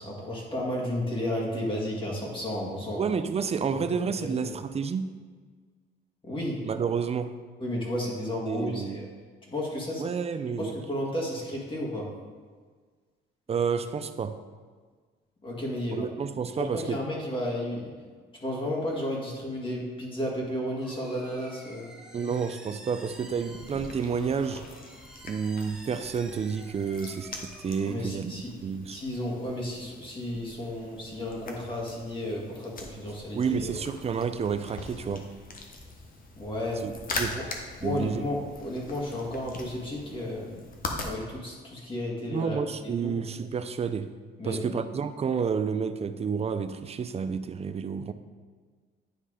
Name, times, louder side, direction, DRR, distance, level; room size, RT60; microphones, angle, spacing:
voice 1, 0.0-3.0 4.2-4.5 6.2-6.6 7.6-9.1 9.5-10.1 10.6-12.1 15.4-16.1 16.5-17.9 18.4-21.9 27.9-28.5 28.9-33.7 36.4-36.8 37.3-37.4 37.8-40.7 41.0-42.6 42.8-43.1 44.4-44.8, left 1 dB, 25° left, 2.0 m, -33 dB
voice 2, 3.0-5.2 6.6-7.4 8.5-9.0 10.0-10.8 13.5-14.4 15.9-17.0 22.1-24.7 25.2-29.0 33.3-35.3 36.8-37.4 37.8-38.3 42.3-44.1 44.4-48.1, right 6 dB, 30° right, 0.4 m, -30 dB
sound 1, 20.8-27.9, right 1 dB, 5° right, 0.8 m, -50 dB
sound 2, 23.1-41.1, left 2 dB, 45° left, 1.0 m, -42 dB
9.5 x 3.2 x 4.9 m
cardioid pair, 90°, 20 cm